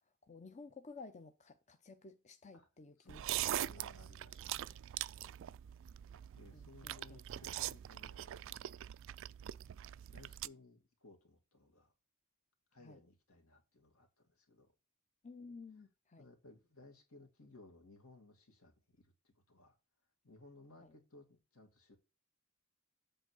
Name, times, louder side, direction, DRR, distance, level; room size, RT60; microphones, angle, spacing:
voice 1, 0.2-3.2 3.5-3.9 6.5-7.2 12.8-13.0 15.2-16.3 20.8-20.9, left 4 dB, 35° left, 0.6 m, -54 dB
voice 2, 3.0-4.9 6.3-8.7 10.1-11.9 12.7-14.7 16.2-19.8 20.2-22.0, left 2 dB, 75° left, 2.4 m, -61 dB
sound 1, 3.1-10.5, right 12 dB, 60° right, 0.3 m, -42 dB
7.9 x 3.7 x 6.3 m
head